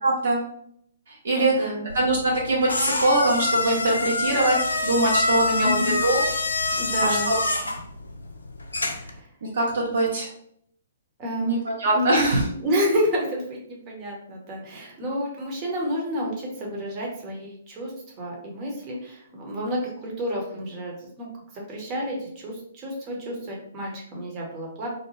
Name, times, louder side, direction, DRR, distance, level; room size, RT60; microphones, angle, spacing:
voice 1, 0.0-0.4 1.2-1.5 1.9-6.2 7.0-7.4 9.5-10.3 11.4-12.4, right 2 dB, 60° right, -3 dB, 0.7 m, -22 dB
voice 2, 1.3-1.9 5.6-6.0 6.7-7.3 8.8-9.3 11.2-11.6 11.9-17.9 18.2-21.3 21.5-24.9, equal, 30° right, -2 dB, 0.9 m, -30 dB
sound 1, 1.9-9.2, left 2 dB, 80° left, 0.4 m, -26 dB
2.6 x 2.1 x 3.1 m, 0.69 s
figure-of-eight pair, 120°, 0 cm